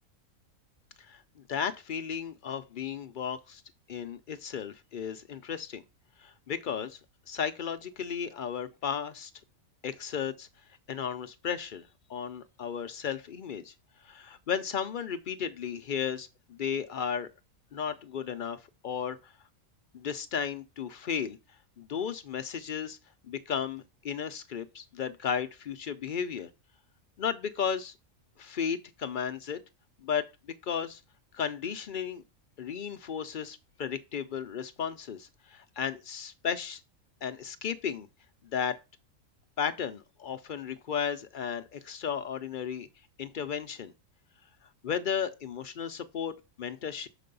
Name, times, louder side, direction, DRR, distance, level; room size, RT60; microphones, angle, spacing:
voice 1, 1.0-3.6 3.9-5.8 6.2-7.0 7.3-9.3 9.8-10.5 10.9-13.7 14.0-17.3 17.7-19.3 19.9-21.4 21.8-23.0 23.3-26.5 27.2-27.9 28.4-29.6 30.0-30.3 30.6-31.0 31.3-32.2 32.6-36.8 37.2-38.1 38.4-38.8 39.6-42.9 43.2-43.9 44.8-47.1, left 7 dB, 65° left, 0.5 m, -34 dB
6.6 x 4.0 x 5.3 m
omnidirectional pair, 1.5 m